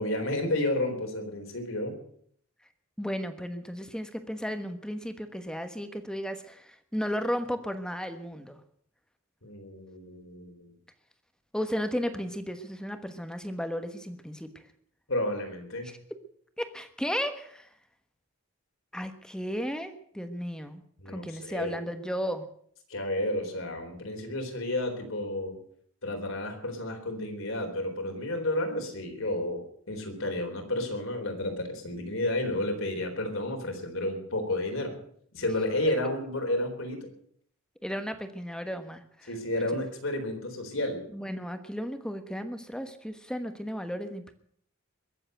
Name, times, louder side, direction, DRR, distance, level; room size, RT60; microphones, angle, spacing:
voice 1, 0.0-1.9 9.4-10.7 15.1-15.9 21.0-21.8 22.9-25.6 26.0-29.6 29.9-34.9 35.3-37.1 39.3-41.0, left 1 dB, 70° left, 3 dB, 3.9 m, -31 dB
voice 2, 3.0-8.6 11.5-14.6 15.8-16.0 16.6-17.7 18.9-22.5 37.8-39.3 39.7-39.8 41.1-44.3, equal, 5° left, 8 dB, 1.3 m, -34 dB
22.0 x 7.8 x 7.9 m, 0.64 s
head